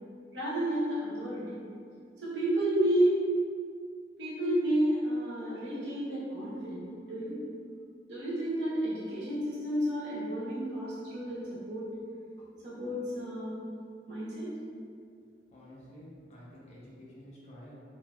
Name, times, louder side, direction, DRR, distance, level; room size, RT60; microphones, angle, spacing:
voice 1, 0.3-1.6 2.2-3.2 4.2-7.4 8.1-11.9 12.6-13.6 14.1-14.5, right 1 dB, 75° right, -9 dB, 1.1 m, -31 dB
voice 2, 15.5-17.8, equal, 35° left, -6 dB, 0.5 m, -50 dB
3.2 x 2.8 x 2.3 m, 2.3 s
head